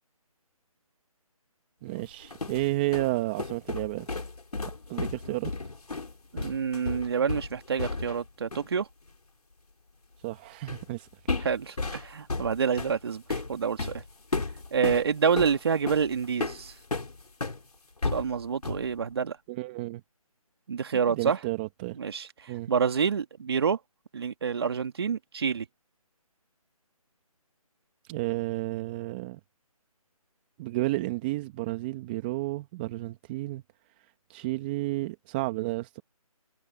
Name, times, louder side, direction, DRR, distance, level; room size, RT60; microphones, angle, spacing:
voice 1, 1.8-4.1 4.9-5.5 10.2-11.1 19.5-20.0 21.1-22.0 22.5-22.7 28.1-29.4 30.6-33.6 34.3-36.0, right 19 dB, 15° right, 1.7 m, -31 dB
sound 1, 2.0-8.3 8.5-8.7 10.7-10.9 11.3-17.6 18.0-18.9, left 3 dB, 85° left, 4.4 m, -34 dB
voice 2, 6.3-8.9 11.4-14.0 14.7-16.7 18.1-19.4 20.7-21.4 21.9-23.8 24.1-25.7, right 6 dB, 40° right, 2.5 m, -28 dB
figure-of-eight pair, 165°, 19 cm